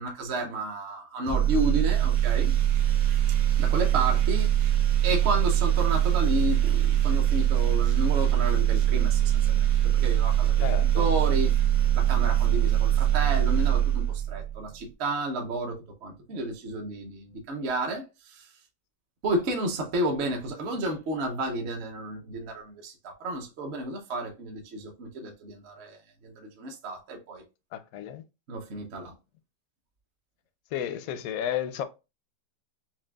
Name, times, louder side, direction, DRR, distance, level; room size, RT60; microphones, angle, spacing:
voice 1, 0.0-2.5 3.6-4.5 5.0-11.5 11.9-18.5 19.2-27.4 28.5-29.1, right 1 dB, 50° right, 0.8 m, -31 dB
sound 1, 1.2-14.6, right 11 dB, 90° right, 1.3 m, -23 dB
voice 2, 10.6-11.1 27.7-28.2 30.7-31.8, left 10 dB, 70° left, 0.8 m, -32 dB
5.8 x 2.3 x 2.3 m
omnidirectional pair, 1.9 m